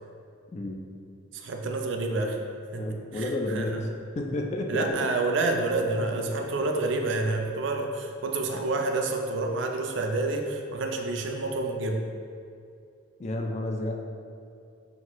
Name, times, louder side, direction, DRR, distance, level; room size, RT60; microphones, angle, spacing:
voice 1, 0.5-0.8 2.8-3.9 4.2-5.1 6.1-6.5 13.2-13.9, left 1 dB, 35° left, 1 dB, 0.3 m, -31 dB
voice 2, 1.3-2.4 2.7-3.8 4.7-12.0, right 2 dB, 65° right, 3 dB, 0.4 m, -28 dB
5.8 x 2.6 x 2.9 m, 2.5 s
head